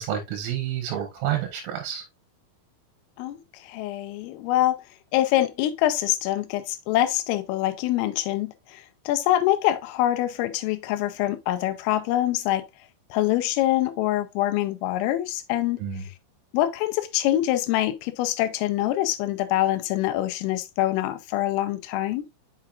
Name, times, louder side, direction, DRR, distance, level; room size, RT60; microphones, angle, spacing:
voice 1, 0.0-2.0 15.8-16.1, right 10 dB, 80° right, 3.6 m, -29 dB
voice 2, 3.2-4.8 5.1-12.7 13.1-15.8 16.5-22.3, left 14 dB, 85° left, 3.3 m, -25 dB
7.1 x 5.8 x 2.4 m
omnidirectional pair, 5.9 m